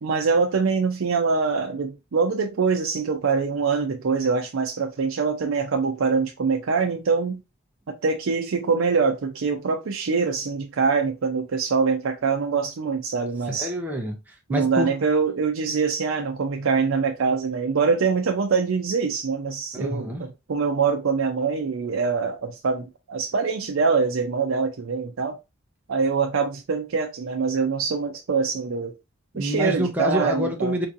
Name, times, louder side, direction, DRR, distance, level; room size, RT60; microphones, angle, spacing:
voice 1, 0.0-7.4 7.9-13.7 14.5-20.1 20.5-25.4 25.9-28.9 29.3-30.7, right 5 dB, 85° right, 0.5 m, -24 dB
voice 2, 13.5-14.9 19.7-20.2 29.3-30.9, equal, 10° right, 0.5 m, -27 dB
4.5 x 2.7 x 2.6 m
head